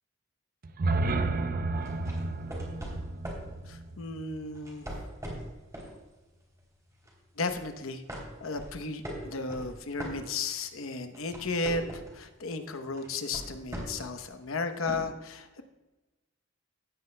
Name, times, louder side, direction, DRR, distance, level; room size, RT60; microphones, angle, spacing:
sound 1, 0.6-4.7, right 2 dB, 45° right, 0.5 m, -32 dB
sound 2, 1.8-3.5 4.5-6.0 6.4-6.6 7.0-7.7 8.1-10.7 11.0-12.2 13.0-14.1 14.9-15.0, equal, 15° right, 3.0 m, -40 dB
voice 1, 3.7-4.9 7.4-15.6, left 3 dB, 85° left, 8 dB, 0.9 m, -34 dB
15.5 x 9.5 x 2.2 m, 1.1 s
head